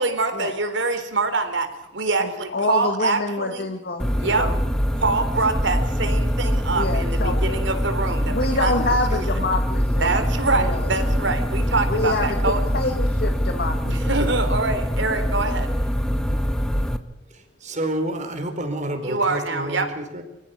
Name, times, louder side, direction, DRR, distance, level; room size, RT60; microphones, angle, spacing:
voice 1, 0.0-1.7 1.9-3.7 4.2-4.5 5.0-8.7 9.1-9.2 10.0-12.6 13.8-15.7 19.0-19.9, right 3 dB, 70° right, 7 dB, 3.9 m, -24 dB
voice 2, 2.2-4.6 5.4-5.5 6.7-7.6 8.3-10.1 10.5-11.0 11.9-14.2, left 2 dB, 55° left, 5 dB, 2.1 m, -27 dB
sound 1, 4.0-17.0, equal, 5° left, 1.4 m, -23 dB
voice 3, 17.3-20.2, right 1 dB, 40° right, 6 dB, 4.6 m, -29 dB
25.5 x 15.5 x 8.4 m, 0.89 s
head